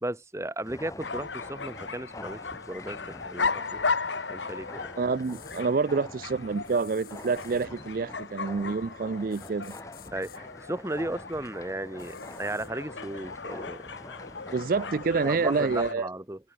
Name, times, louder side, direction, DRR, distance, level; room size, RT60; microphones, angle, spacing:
voice 1, 0.0-2.4 2.7-3.0 3.2-3.9 4.3-4.9 10.1-13.8 15.2-16.4, right 1 dB, 15° right, 1.1 m, -35 dB
sound 1, 0.6-15.9, left 1 dB, 15° left, 1.2 m, -46 dB
sound 2, 1.0-15.9, left 4 dB, 85° left, 2.0 m, -36 dB
voice 2, 5.0-9.8 14.5-16.1, right 4 dB, 50° right, 0.4 m, -28 dB
sound 3, 5.2-5.6 6.6-7.7 9.3-10.4 12.0-12.7, left 11 dB, 50° left, 7.7 m, -52 dB
open air
head